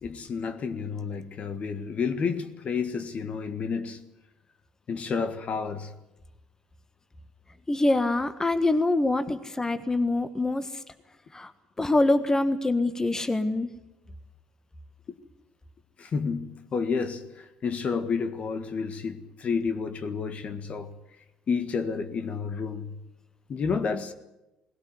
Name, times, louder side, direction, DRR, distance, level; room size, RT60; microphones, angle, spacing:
voice 1, 0.0-4.0 4.9-5.9 16.0-17.3 17.6-20.9 21.5-23.0 23.5-24.1, left 5 dB, 45° left, 1.7 m, -30 dB
voice 2, 7.7-10.7 11.3-11.5 11.8-13.7, left 2 dB, 20° left, 1.5 m, -24 dB
20.0 x 17.0 x 9.6 m
hypercardioid pair, 60°, 3 cm